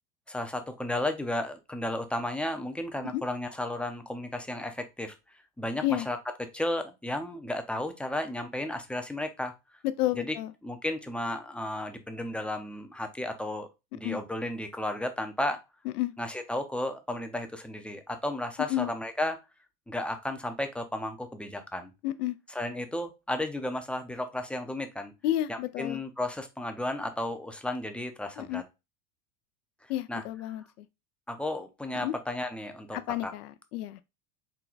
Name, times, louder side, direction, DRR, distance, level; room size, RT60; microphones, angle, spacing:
voice 1, 0.3-5.1 5.6-6.2 6.5-9.5 10.2-10.3 10.6-15.6 16.2-19.4 19.9-21.9 22.5-25.1 25.5-28.6 30.1-30.2 31.3-33.3, left 1 dB, 5° left, 0.4 m, -33 dB
voice 2, 10.0-10.5 14.0-14.2 15.9-16.1 18.7-18.9 22.0-22.3 25.2-26.0 28.4-28.6 29.9-30.6 32.0-32.1 32.9-34.0, left 14 dB, 85° left, 0.6 m, -30 dB
4.5 x 2.2 x 3.9 m
supercardioid pair, 110°, 44 cm